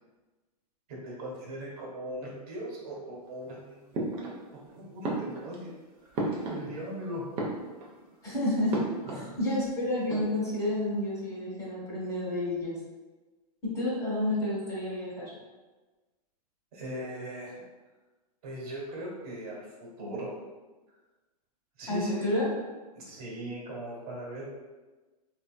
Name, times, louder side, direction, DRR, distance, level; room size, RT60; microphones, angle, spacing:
voice 1, 0.9-3.9 4.7-5.7 6.2-7.3 9.1-9.4 16.7-17.5 18.4-19.6 20.0-20.3 21.8-22.3 22.9-24.5, equal, 65° right, -4 dB, 1.3 m, -39 dB
sound 1, 3.9-4.7 5.0-6.9 7.2-8.1 8.7-9.3 9.6-9.7 9.9-10.7, right 2 dB, 30° right, 0.6 m, -34 dB
voice 2, 8.2-8.8 9.1-12.7 13.7-15.3 21.9-22.5, left 1 dB, 15° left, -7 dB, 1.2 m, -30 dB
3.3 x 2.7 x 2.2 m, 1.2 s
hypercardioid pair, 135°, 20 cm